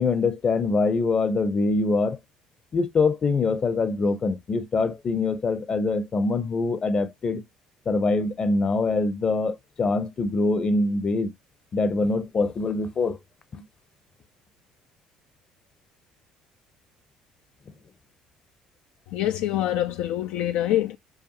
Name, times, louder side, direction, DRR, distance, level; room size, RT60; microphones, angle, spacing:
voice 1, 0.0-2.2 2.7-7.4 7.9-11.3 11.7-13.2 13.5-13.6, left 3 dB, 40° left, 0.7 m, -24 dB
voice 2, 19.1-21.0, left 13 dB, 70° left, 0.4 m, -25 dB
4.8 x 2.4 x 2.9 m
hypercardioid pair, 65°, 2 cm